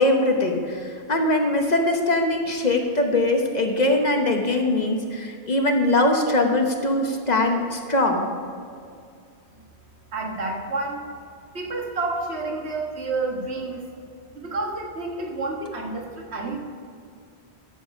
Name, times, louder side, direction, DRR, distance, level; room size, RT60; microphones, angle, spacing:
voice 1, 0.0-8.3, left 2 dB, 45° left, 3 dB, 1.1 m, -22 dB
voice 2, 10.1-11.1 11.5-13.9 14.3-16.6, right 3 dB, 85° right, 1 dB, 1.6 m, -29 dB
12.5 x 7.0 x 5.2 m, 2.3 s
omnidirectional pair, 1.1 m